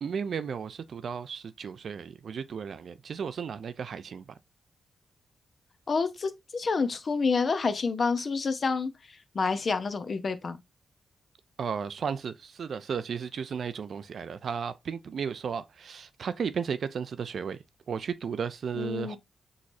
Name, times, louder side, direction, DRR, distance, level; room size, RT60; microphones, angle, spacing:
voice 1, 0.0-4.3 11.6-19.2, right 6 dB, 70° right, 0.4 m, -34 dB
voice 2, 5.9-10.6 18.8-19.2, left 4 dB, 55° left, 0.7 m, -28 dB
6.3 x 3.0 x 2.6 m
cardioid pair, 75°, 0 cm